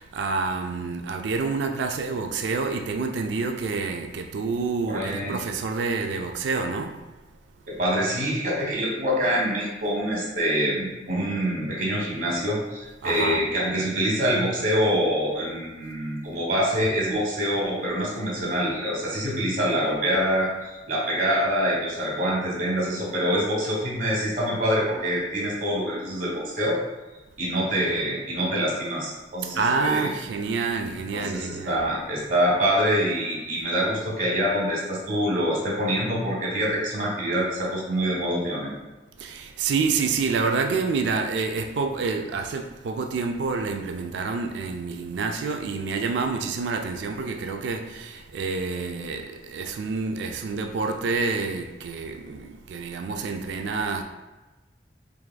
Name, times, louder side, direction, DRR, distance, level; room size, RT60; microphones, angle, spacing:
voice 1, 0.0-7.0 13.0-13.4 29.5-31.8 39.2-54.0, right 4 dB, 85° right, 0.4 m, -28 dB
voice 2, 4.9-5.4 7.7-26.8 27.4-30.1 31.1-38.7, equal, 50° right, 1.2 m, -25 dB
4.7 x 3.4 x 2.2 m
head